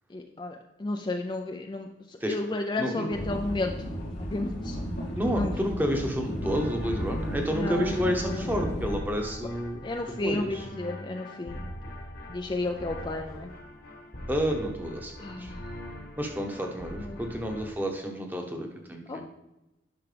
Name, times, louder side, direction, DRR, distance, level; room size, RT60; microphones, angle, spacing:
voice 1, 0.1-0.6 0.8-1.9 2.3-3.7 4.2-4.8 5.3-5.5 7.5-8.0 8.2-8.5 9.8-11.6 12.3-13.5 15.2-15.6 17.1-17.2 19.1-19.2, left 2 dB, 25° left, 4 dB, 0.4 m, -32 dB
sound 1, 3.1-9.0, equal, 85° left, 2.3 m, -34 dB
voice 2, 5.1-9.8 10.2-10.7 14.3-15.1 15.4-15.5 16.2-19.2, equal, 10° right, 3 dB, 1.0 m, -30 dB
sound 2, 6.4-17.7, equal, 50° left, 1.1 m, -42 dB
10.5 x 5.8 x 3.3 m, 0.95 s
head